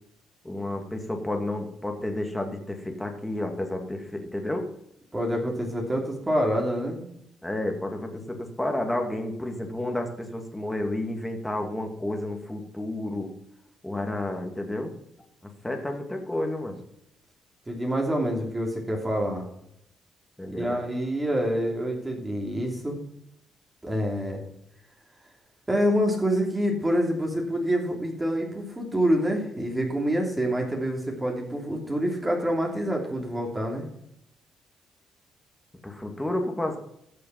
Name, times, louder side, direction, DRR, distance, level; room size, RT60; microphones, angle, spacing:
voice 1, 0.4-4.7 7.4-13.3 13.8-14.9 15.6-16.8 20.4-20.8 35.8-36.8, left 1 dB, 10° left, 3 dB, 2.4 m, -31 dB
voice 2, 5.1-7.0 17.7-19.5 20.5-23.0 23.8-24.4 25.7-33.8, equal, 15° right, 0 dB, 3.1 m, -26 dB
14.0 x 6.7 x 5.9 m, 0.75 s
cardioid pair, 90°, 0 cm